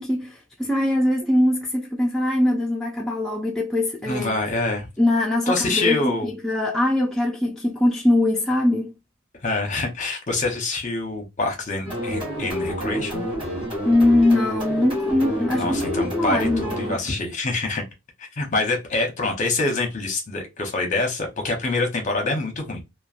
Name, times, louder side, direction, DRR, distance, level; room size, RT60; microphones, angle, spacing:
voice 1, 0.0-4.3 5.0-8.9 13.8-17.0, left 1 dB, ahead, 0.4 m, -22 dB
voice 2, 4.0-4.9 5.5-6.3 9.4-13.2 15.5-17.8 18.4-22.8, left 2 dB, 35° left, 0.8 m, -25 dB
sound 1, 11.8-16.9, equal, 25° right, 1.1 m, -28 dB
3.0 x 2.2 x 2.4 m
head